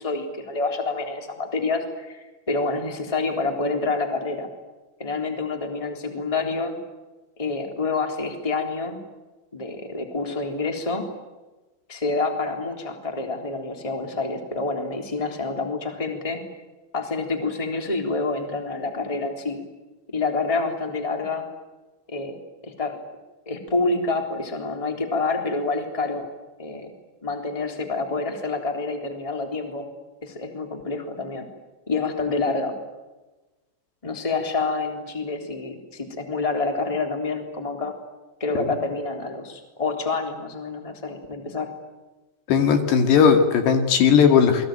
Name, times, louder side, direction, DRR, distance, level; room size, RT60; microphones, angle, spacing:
voice 1, 0.0-4.5 5.0-6.8 7.4-9.0 9.5-11.0 11.9-16.4 16.9-19.6 20.1-21.5 22.1-22.4 22.6-22.9 23.4-26.3 26.6-26.9 27.2-29.9 30.2-31.5 31.9-32.7 34.0-37.9 38.4-41.7, left 3 dB, 10° left, 4 dB, 2.9 m, -27 dB
voice 2, 42.5-44.7, left 7 dB, 70° left, 6 dB, 4.3 m, -17 dB
28.5 x 22.0 x 9.2 m, 1.2 s
omnidirectional pair, 5.3 m